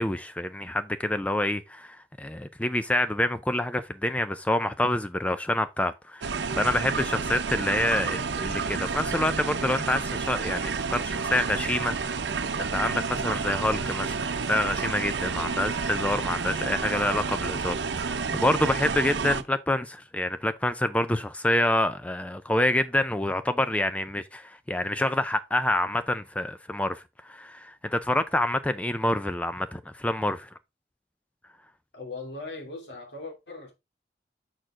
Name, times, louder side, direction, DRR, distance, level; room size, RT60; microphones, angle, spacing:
voice 1, 0.0-14.2 14.5-30.5, left 1 dB, 10° left, 0.4 m, -27 dB
sound 1, 6.2-19.4, right 5 dB, 80° right, 0.6 m, -30 dB
voice 2, 31.9-33.7, left 3 dB, 85° left, 3.0 m, -39 dB
6.5 x 6.2 x 3.7 m
head